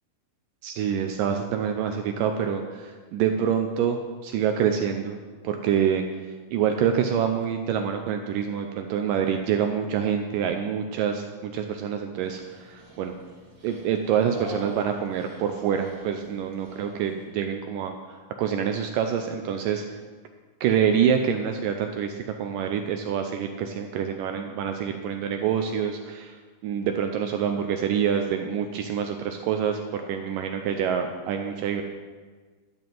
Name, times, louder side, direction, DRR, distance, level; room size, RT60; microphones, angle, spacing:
voice 1, 0.6-5.2 5.4-6.0 6.5-13.1 13.6-19.9 20.6-31.8, right 8 dB, 80° right, 5 dB, 2.0 m, -26 dB
Dog, 12.2-17.2, right 2 dB, 35° right, 1.7 m, -46 dB
12.0 x 5.3 x 7.6 m, 1.4 s
omnidirectional pair, 4.3 m